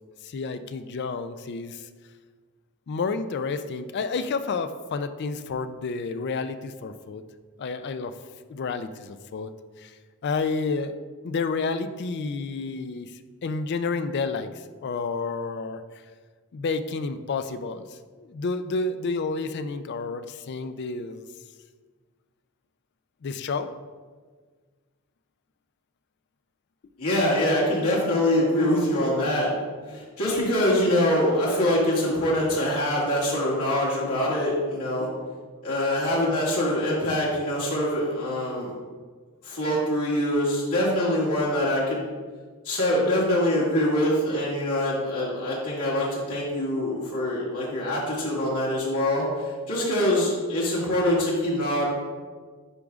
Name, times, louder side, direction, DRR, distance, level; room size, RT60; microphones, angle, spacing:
voice 1, 0.2-1.9 2.9-7.2 7.6-8.1 8.5-10.0 10.2-11.0 11.2-14.5 14.8-15.8 16.5-17.8 18.2-21.2 23.2-23.7, left 4 dB, 50° left, 11 dB, 0.3 m, -30 dB
voice 2, 27.0-29.5 29.9-35.1 35.6-38.7 39.4-42.0 42.6-51.9, left 1 dB, 90° left, -6 dB, 2.0 m, -24 dB
9.7 x 5.1 x 2.4 m, 1.5 s
head